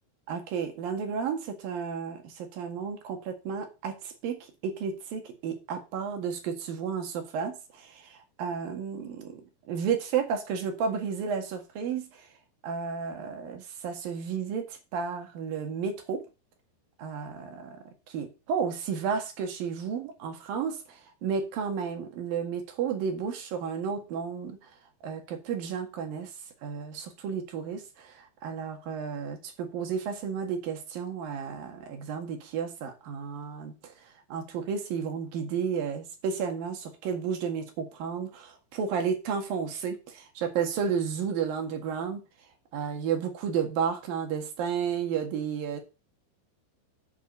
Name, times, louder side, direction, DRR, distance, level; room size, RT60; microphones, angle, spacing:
voice 1, 0.3-12.3 12.6-16.3 17.0-24.6 25.0-26.3 26.6-33.9 34.3-42.2 42.7-45.8, right 6 dB, 60° right, 3.4 m, -32 dB
9.0 x 6.5 x 6.5 m
omnidirectional pair, 5.0 m